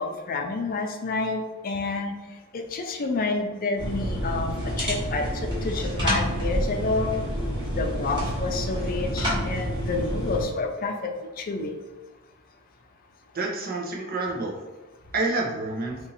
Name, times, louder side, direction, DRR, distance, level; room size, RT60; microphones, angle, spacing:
voice 1, 0.0-2.1 2.5-7.1 7.8-11.7, left 3 dB, 40° left, 3 dB, 0.4 m, -29 dB
sound 1, 3.8-10.4, equal, 20° right, 1.2 m, -28 dB
voice 2, 13.3-14.6 15.1-16.0, right 2 dB, 45° right, -1 dB, 0.7 m, -28 dB
3.0 x 2.6 x 4.0 m, 1.2 s
head